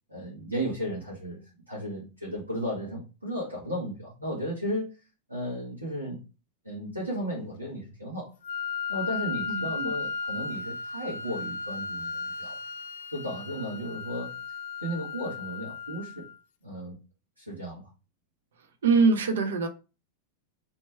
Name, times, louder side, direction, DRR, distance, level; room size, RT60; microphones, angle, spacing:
voice 1, 0.1-1.4 1.7-4.9 5.3-6.2 6.6-8.3 8.9-12.6 13.1-14.4 14.8-16.3 16.6-17.0 17.4-17.9, equal, 85° right, 1.6 m, -34 dB
Wind instrument woodwind instrument, 8.4-16.4, left 5 dB, 55° left, 0.4 m, -35 dB
voice 2, 9.5-9.9 18.8-19.7, right 4 dB, 65° right, 0.7 m, -23 dB
3.2 x 3.1 x 4.4 m
figure-of-eight pair, 90°, 0 cm